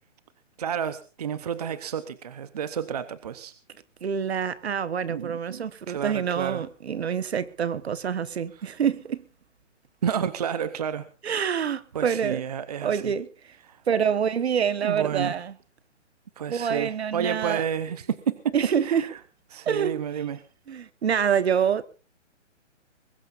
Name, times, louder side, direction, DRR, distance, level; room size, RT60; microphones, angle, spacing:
voice 1, 0.6-3.5 5.1-6.6 10.0-11.1 11.9-13.1 13.7-13.8 14.8-15.3 16.4-18.5 18.8-19.1 19.5-20.4, right 8 dB, 30° right, 0.8 m, -30 dB
voice 2, 4.0-9.2 11.2-12.4 12.8-13.6 13.9-15.5 16.5-17.6 18.5-19.1 19.6-20.0 20.7-21.8, right 7 dB, 60° right, 1.4 m, -26 dB
22.0 x 18.0 x 2.6 m
hypercardioid pair, 175°, 37 cm